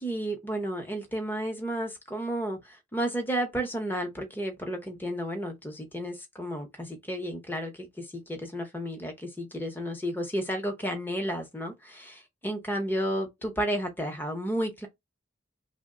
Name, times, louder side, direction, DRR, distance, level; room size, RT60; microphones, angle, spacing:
voice 1, 0.0-14.9, equal, 10° left, 0.7 m, -32 dB
3.0 x 2.1 x 3.6 m
head